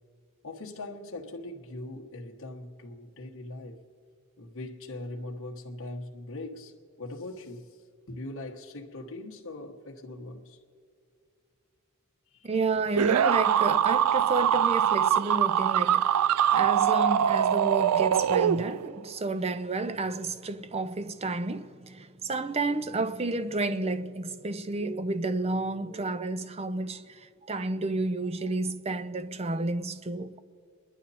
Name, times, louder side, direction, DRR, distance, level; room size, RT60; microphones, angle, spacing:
voice 1, 0.4-3.8 4.4-7.7 8.1-10.6 12.3-12.5, left 2 dB, 60° left, 1.4 m, -41 dB
voice 2, 12.4-30.4, right 3 dB, 30° right, 0.6 m, -31 dB
sound 1, 13.0-19.0, right 9 dB, 90° right, 0.3 m, -23 dB
30.0 x 11.5 x 4.2 m
head